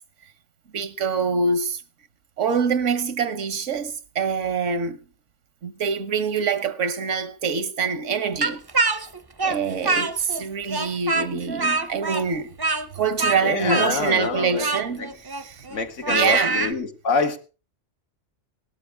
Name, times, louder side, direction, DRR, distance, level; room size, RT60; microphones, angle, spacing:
voice 1, 0.7-1.8 2.4-5.0 5.6-8.6 9.4-12.5 12.9-15.1 15.4-15.6 16.1-16.7, right 5 dB, 80° right, 1.3 m, -25 dB
Speech, 8.4-10.4 10.7-16.7, right 3 dB, 25° right, 0.6 m, -25 dB
voice 2, 13.4-14.7 15.0-15.1 15.7-17.4, left 4 dB, 90° left, 1.8 m, -26 dB
17.5 x 13.0 x 3.5 m
omnidirectional pair, 1.2 m